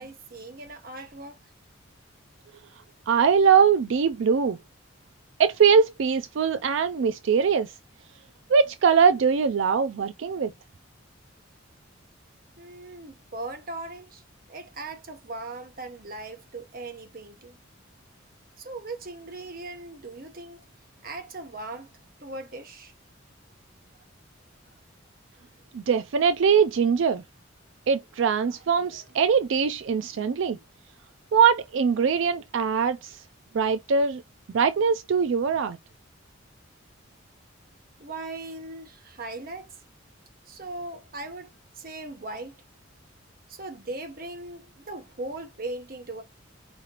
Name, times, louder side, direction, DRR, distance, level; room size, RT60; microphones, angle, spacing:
voice 1, 0.0-1.4 12.6-14.2 14.5-17.6 18.6-20.6 21.0-21.9 22.2-22.9 28.3-29.1 38.0-39.8 40.5-42.6 43.5-46.2, right 2 dB, 45° right, 0.9 m, -39 dB
voice 2, 3.1-4.6 5.4-7.8 8.5-10.5 25.7-27.2 27.9-30.6 31.3-33.2 33.5-34.2 34.5-35.8, right 6 dB, 65° right, 0.4 m, -22 dB
4.8 x 3.1 x 2.9 m
head